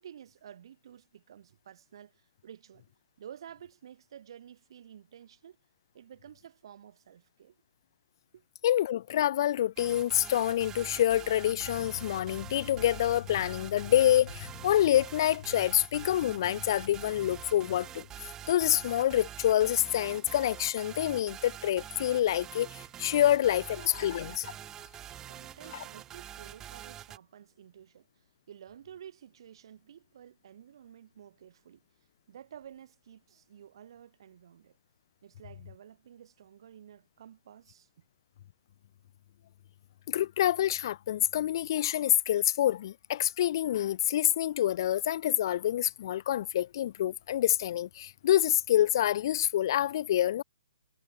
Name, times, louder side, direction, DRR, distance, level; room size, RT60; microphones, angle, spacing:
voice 1, 0.0-2.8 3.2-5.6 5.9-7.6 8.3-8.4 25.1-31.8 32.3-34.8 35.2-38.0, right 9 dB, 55° right, 3.4 m, -51 dB
voice 2, 8.6-18.1 18.5-24.5 40.1-50.4, left 12 dB, 45° left, 0.3 m, -27 dB
sound 1, 9.8-27.2, right 11 dB, 15° right, 0.7 m, -45 dB
hypercardioid pair, 145°, 3 cm